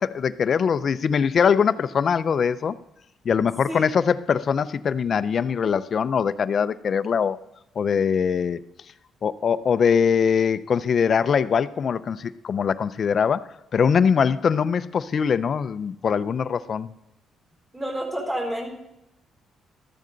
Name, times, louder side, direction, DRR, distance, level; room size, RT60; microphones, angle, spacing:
voice 1, 0.0-2.7 3.2-7.4 7.8-8.6 9.2-16.9, left 6 dB, 50° left, 0.5 m, -22 dB
voice 2, 17.7-18.7, right 1 dB, 20° right, 4.3 m, -29 dB
13.5 x 13.0 x 3.9 m
cardioid pair, 90°, 0 cm